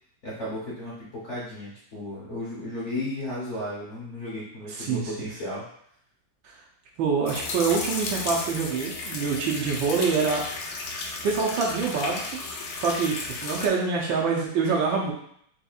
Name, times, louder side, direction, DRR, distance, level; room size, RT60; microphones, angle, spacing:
voice 1, 0.2-5.7, left 1 dB, 50° left, -7 dB, 1.0 m, -34 dB
voice 2, 4.7-5.1 7.0-10.4 11.2-12.2 12.8-15.1, right 5 dB, 75° right, -1 dB, 1.3 m, -25 dB
sound 1, 7.2-13.7, left 3 dB, 75° left, 0.9 m, -34 dB
4.3 x 3.4 x 2.3 m, 0.68 s
omnidirectional pair, 2.3 m